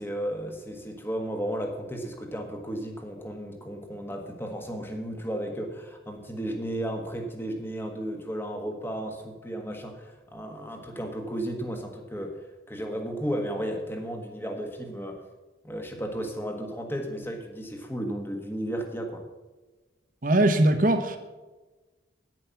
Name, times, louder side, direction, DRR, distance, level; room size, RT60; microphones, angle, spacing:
voice 1, 0.0-12.4 12.7-15.2 15.6-19.2, right 1 dB, 10° left, 3 dB, 1.4 m, -34 dB
voice 2, 20.2-21.2, right 1 dB, 45° right, 7 dB, 1.1 m, -21 dB
10.5 x 9.7 x 5.8 m, 1.2 s
head